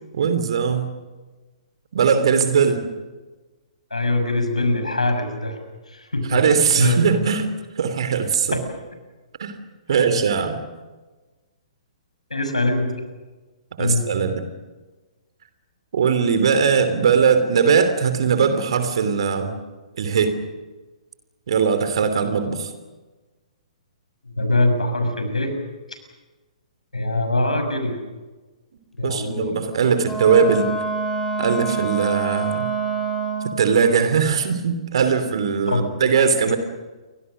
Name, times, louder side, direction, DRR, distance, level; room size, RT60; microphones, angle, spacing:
voice 1, 0.1-0.9 1.9-2.8 6.3-7.5 7.8-8.6 9.4-9.6 9.9-10.6 13.8-14.4 15.9-19.6 20.0-20.4 21.5-22.7 29.0-30.7 31.4-32.7 33.6-36.6, right 6 dB, 55° right, 10 dB, 3.0 m, -20 dB
voice 2, 3.9-5.6 5.9-6.4 6.7-7.0 8.5-8.6 9.9-10.2 12.3-12.9 13.8-14.1 24.2-25.5 26.9-28.0 29.0-29.5 35.7-35.8, left 2 dB, 75° left, 7 dB, 6.5 m, -23 dB
Wind instrument woodwind instrument, 30.0-33.7, right 4 dB, 5° left, 5.7 m, -26 dB
29.5 x 24.5 x 6.5 m, 1.2 s
figure-of-eight pair, 120°, 4 cm